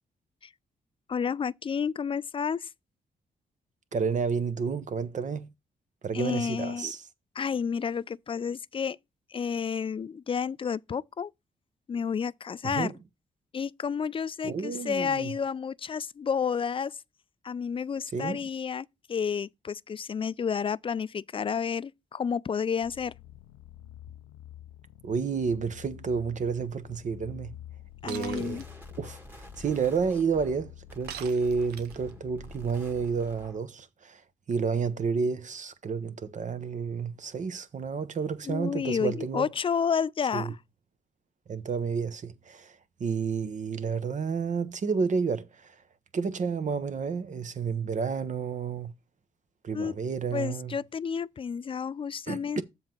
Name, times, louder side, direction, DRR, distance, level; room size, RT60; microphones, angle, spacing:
voice 1, 1.1-2.7 6.1-6.9 7.4-9.0 9.3-11.3 11.9-12.9 13.5-17.0 17.4-23.1 28.0-28.6 38.5-40.6 49.7-49.9 50.3-52.6, left 6 dB, 35° left, 0.4 m, -30 dB
voice 2, 3.9-5.5 6.0-7.1 12.6-12.9 14.4-15.3 18.1-18.4 25.0-27.6 28.0-28.6 29.0-39.5 40.3-40.5 41.5-45.8 46.1-48.9 49.6-50.7 52.3-52.6, right 5 dB, 55° right, 1.0 m, -30 dB
sound 1, 22.8-33.1, left 13 dB, 90° left, 0.5 m, -49 dB
Shatter, 28.1-28.7 31.1-32.1, right 10 dB, 85° right, 0.6 m, -41 dB
sound 2, 28.2-33.7, left 1 dB, 15° right, 1.5 m, -49 dB
7.3 x 4.0 x 5.9 m
supercardioid pair, 55°, 16 cm